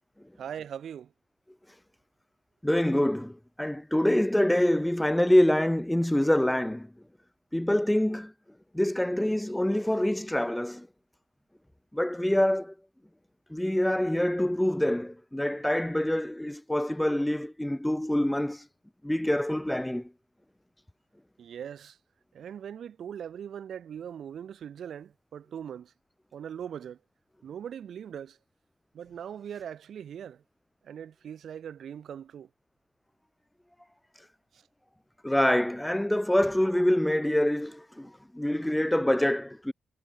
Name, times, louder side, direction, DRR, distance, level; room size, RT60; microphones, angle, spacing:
voice 1, 0.4-1.1 21.4-22.0 22.3-25.9 26.3-27.0 27.4-28.4 28.9-30.4 30.8-32.5 34.5-34.6, right 8 dB, 75° right, 7.7 m, -40 dB
voice 2, 2.6-6.9 7.5-8.3 8.7-10.9 11.9-12.7 13.5-18.7 19.0-20.1 34.2-34.3 35.2-39.7, left 1 dB, 5° left, 3.8 m, -26 dB
cardioid pair, 110°, 0 cm